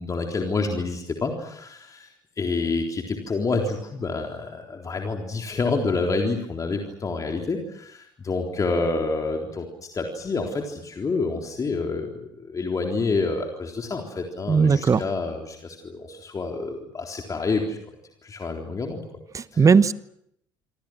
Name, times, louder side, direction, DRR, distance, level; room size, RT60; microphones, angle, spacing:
voice 1, 0.0-2.1 2.4-9.7 9.9-18.0 18.2-19.0 19.5-19.7, left 3 dB, 30° left, 2 dB, 3.8 m, -28 dB
voice 2, 14.5-15.0 19.3-19.9, right 5 dB, 25° right, 17 dB, 1.1 m, -17 dB
27.0 x 27.0 x 6.3 m, 0.74 s
figure-of-eight pair, 55°, 12 cm